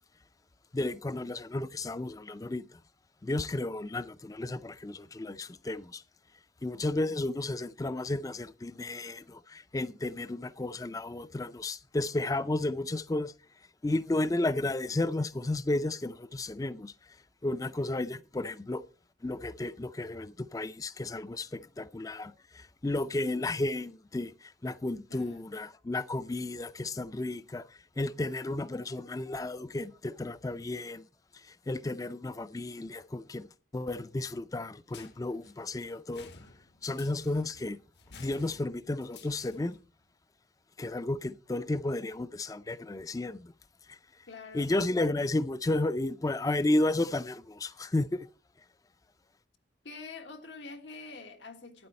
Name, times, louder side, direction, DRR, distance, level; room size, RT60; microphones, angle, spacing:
voice 1, 0.7-2.8 3.2-6.0 6.6-13.3 13.8-16.9 17.4-18.8 19.2-31.1 31.4-33.5 33.7-36.3 36.8-37.8 38.2-39.8 40.8-43.5 43.9-44.0 44.5-48.3, left 2 dB, 20° left, 0.4 m, -33 dB
voice 2, 25.1-25.4 44.3-44.7 49.8-51.9, left 4 dB, 90° left, 1.5 m, -46 dB
sound 1, 34.9-39.9, left 4 dB, 70° left, 1.1 m, -53 dB
12.0 x 9.5 x 4.3 m
head